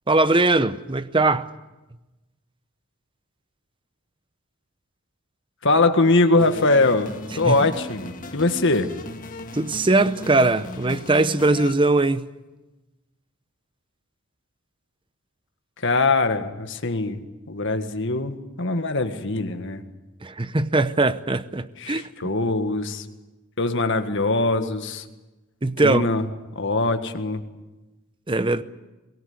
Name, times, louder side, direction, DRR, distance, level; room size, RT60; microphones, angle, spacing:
voice 1, 0.1-1.5 7.5-7.6 9.5-12.2 20.2-22.0 25.6-26.0 28.3-28.6, right 2 dB, 20° right, 0.8 m, -20 dB
voice 2, 5.6-9.0 15.8-17.2 17.5-19.8 21.8-23.1 23.6-25.0 25.8-26.3 26.6-27.4, left 2 dB, 55° left, 1.8 m, -22 dB
sound 1, 6.4-11.7, left 2 dB, 35° left, 1.9 m, -37 dB
23.5 x 18.5 x 9.6 m
head